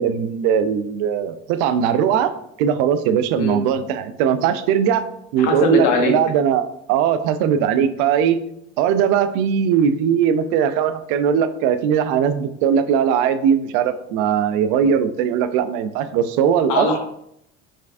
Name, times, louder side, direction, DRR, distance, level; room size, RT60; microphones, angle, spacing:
voice 1, 0.0-2.3 2.6-5.0 5.3-8.4 8.8-16.9, right 8 dB, 80° right, 11 dB, 0.5 m, -19 dB
voice 2, 5.4-6.1 16.7-17.0, left 3 dB, 70° left, 3 dB, 1.1 m, -20 dB
4.5 x 3.5 x 2.5 m, 0.73 s
supercardioid pair, 90°, 33 cm